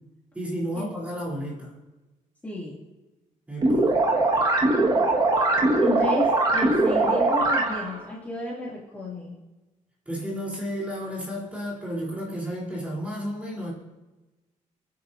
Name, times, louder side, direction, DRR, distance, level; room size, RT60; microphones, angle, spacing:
voice 1, 0.3-1.7 3.5-3.9 10.1-13.7, equal, 10° right, -5 dB, 3.8 m, -32 dB
voice 2, 2.4-2.8 5.8-9.4, left 1 dB, 10° left, -7 dB, 2.8 m, -32 dB
sound 1, 3.6-8.0, right 2 dB, 30° right, 1.8 m, -21 dB
29.5 x 10.0 x 2.8 m, 1.1 s
cardioid pair, 175°, 13 cm